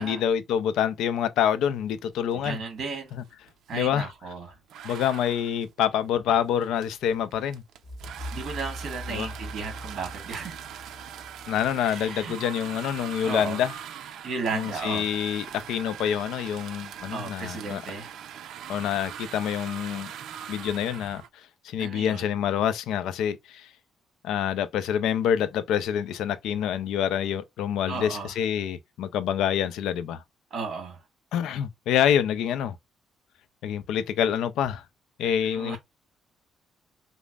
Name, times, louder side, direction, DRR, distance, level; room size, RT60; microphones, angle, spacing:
voice 1, 0.0-2.6 3.7-4.1 4.8-7.6 9.1-9.3 11.5-13.7 14.5-17.8 18.7-20.1 20.5-23.7 24.2-30.2 31.3-32.8 33.6-34.8 35.2-35.8, left 9 dB, 85° left, 0.4 m, -27 dB
voice 2, 2.3-3.1 3.7-4.6 8.3-10.6 11.8-12.3 13.2-13.6 14.2-15.1 17.1-18.1 21.8-22.2 27.9-28.3 30.5-31.0 35.2-35.8, right 4 dB, 50° right, 1.2 m, -34 dB
sound 1, 2.3-2.6 2.9-4.1 4.7-21.3, right 9 dB, 75° right, 0.4 m, -41 dB
sound 2, 7.8-12.7, equal, 25° left, 1.1 m, -41 dB
5.1 x 2.0 x 2.3 m
cardioid pair, 125°, 0 cm